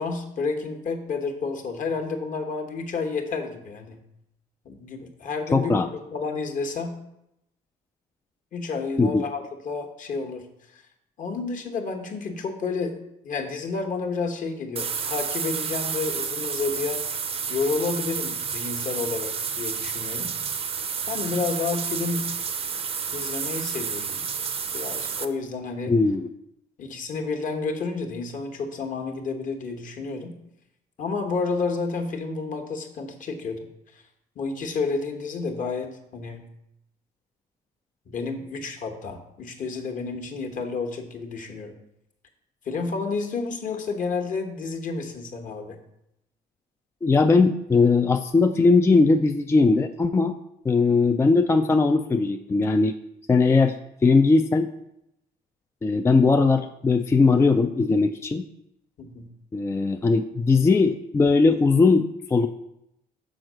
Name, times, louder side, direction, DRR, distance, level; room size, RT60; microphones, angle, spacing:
voice 1, 0.0-4.0 4.6-7.0 8.5-10.5 10.7-10.8 11.2-13.0 13.2-17.0 17.5-20.3 21.1-22.3 23.1-24.2 24.7-26.0 26.8-30.4 31.0-33.7 34.4-36.5 38.1-41.7 42.6-45.8 59.0-59.3, left 4 dB, 50° left, 4 dB, 1.2 m, -30 dB
voice 2, 5.5-5.9 9.0-9.2 25.9-26.3 47.0-50.3 50.7-52.9 53.3-53.7 54.0-54.7 55.8-58.5 59.5-62.5, left 4 dB, 15° left, 7 dB, 0.3 m, -19 dB
sound 1, 14.8-25.3, right 6 dB, 35° right, 0.6 m, -30 dB
6.2 x 4.6 x 6.2 m, 0.82 s
cardioid pair, 110°, 17 cm